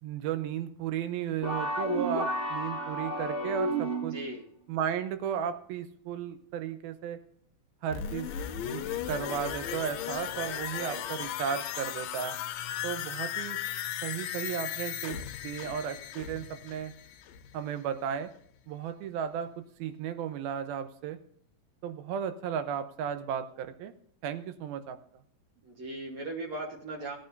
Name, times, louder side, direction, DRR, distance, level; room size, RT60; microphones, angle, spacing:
voice 1, 0.0-4.2 4.7-7.2 7.8-8.3 8.6-12.4 12.8-13.6 14.0-15.2 15.4-16.9 17.5-18.3 18.7-21.2 21.8-23.9 24.2-25.0, right 8 dB, 80° right, 10 dB, 2.7 m, -34 dB
sound 1, 1.4-4.3, right 1 dB, 30° right, 1.5 m, -31 dB
voice 2, 4.1-4.4 10.8-11.0 25.6-27.2, right 2 dB, 55° right, 0 dB, 2.1 m, -38 dB
sound 2, 7.9-17.6 17.9-18.0, left 10 dB, 75° left, 2.2 m, -36 dB
18.0 x 9.1 x 2.7 m, 0.64 s
omnidirectional pair, 4.3 m